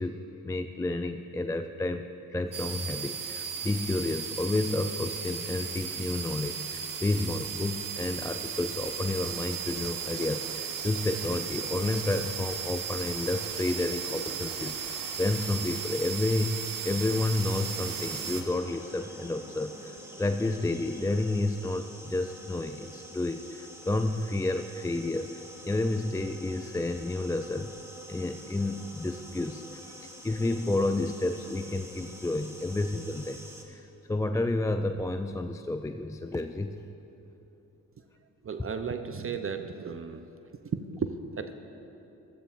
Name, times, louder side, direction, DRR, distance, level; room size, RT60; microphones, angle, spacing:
voice 1, 0.0-27.8 28.1-33.4 33.7-36.8, left 2 dB, 10° left, 8 dB, 0.4 m, -31 dB
sound 1, 2.5-18.4, right 7 dB, 60° right, 1.0 m, -36 dB
sound 2, 17.3-33.6, equal, 5° right, 1.8 m, -47 dB
voice 2, 38.4-40.2 40.6-41.5, right 6 dB, 35° right, 8 dB, 0.6 m, -34 dB
15.0 x 13.5 x 2.5 m, 2.9 s
hypercardioid pair, 40°, 38 cm